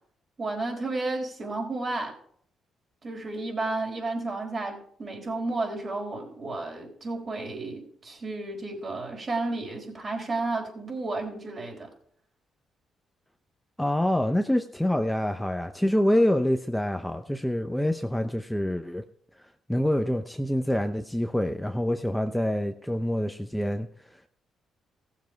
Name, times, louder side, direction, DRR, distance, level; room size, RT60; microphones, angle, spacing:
voice 1, 0.4-2.1 3.0-11.9, right 2 dB, 40° right, 1 dB, 4.1 m, -32 dB
voice 2, 13.8-19.0 19.4-23.9, left 1 dB, 5° left, 6 dB, 0.7 m, -26 dB
16.0 x 7.3 x 4.6 m, 0.62 s
cardioid pair, 90°, 0 cm